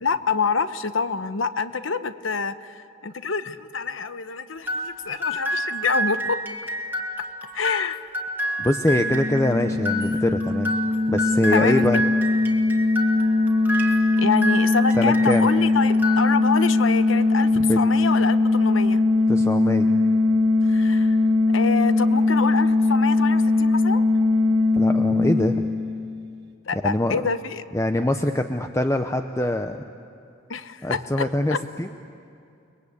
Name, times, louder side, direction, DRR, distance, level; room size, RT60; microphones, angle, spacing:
voice 1, 0.0-6.4 7.5-8.0 11.5-11.9 14.2-17.5 17.8-19.0 20.7-21.2 21.5-24.0 26.7-27.6 30.5-31.6, left 5 dB, 70° left, 11 dB, 1.0 m, -26 dB
sound 1, 4.7-15.5 15.9-16.8, equal, 10° right, 1.9 m, -29 dB
voice 2, 8.6-10.7 11.1-12.0 15.0-15.5 17.6-17.8 19.3-19.9 24.7-25.7 26.8-27.2 27.7-29.8 30.8-31.9, left 1 dB, 15° left, 6 dB, 0.7 m, -23 dB
sound 2, 8.8-26.3, left 2 dB, 60° right, 2.5 m, -20 dB
30.0 x 21.5 x 8.6 m, 2.6 s
head